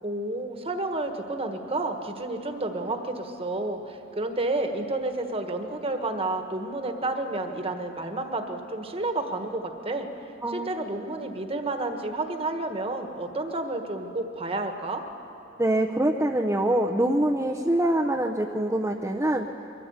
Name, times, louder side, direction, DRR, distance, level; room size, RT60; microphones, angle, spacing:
voice 1, 0.0-10.1 10.5-15.0, right 2 dB, 30° right, 5 dB, 1.4 m, -30 dB
voice 2, 10.4-10.8 15.6-19.5, right 1 dB, 15° right, 0 dB, 0.7 m, -24 dB
22.5 x 14.5 x 8.2 m, 2.9 s
head